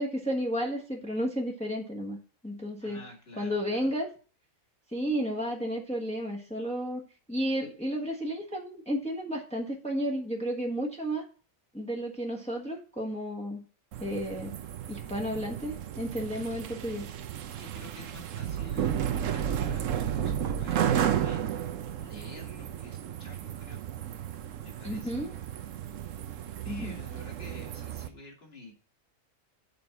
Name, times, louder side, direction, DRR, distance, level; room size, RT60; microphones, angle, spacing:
voice 1, 0.0-2.2 2.4-3.0 3.4-4.1 4.9-11.3 11.7-13.6 14.0-14.5 14.9-17.0 24.8-25.3 26.7-27.0, equal, 5° left, 0 dB, 1.3 m, -32 dB
voice 2, 2.8-3.9 17.6-23.8 24.6-25.2 26.6-28.7, left 1 dB, 45° left, 1 dB, 2.2 m, -49 dB
sound 1, 13.9-28.1, right 9 dB, 65° right, 1.0 m, -33 dB
6.8 x 5.2 x 5.8 m, 0.38 s
omnidirectional pair, 1.5 m